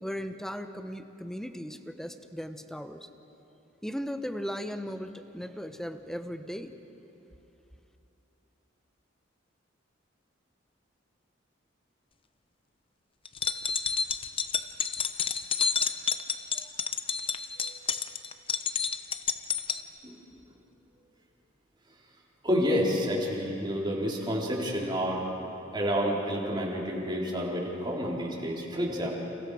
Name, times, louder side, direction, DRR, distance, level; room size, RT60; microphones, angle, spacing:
voice 1, 0.0-3.1 3.8-6.7, equal, ahead, 8 dB, 1.0 m, -37 dB
sound 1, 13.3-19.8, left 6 dB, 30° left, 0.8 m, -29 dB
voice 2, 22.4-25.3 25.7-29.1, equal, 25° right, -3 dB, 4.0 m, -29 dB
30.0 x 28.5 x 5.0 m, 2.9 s
head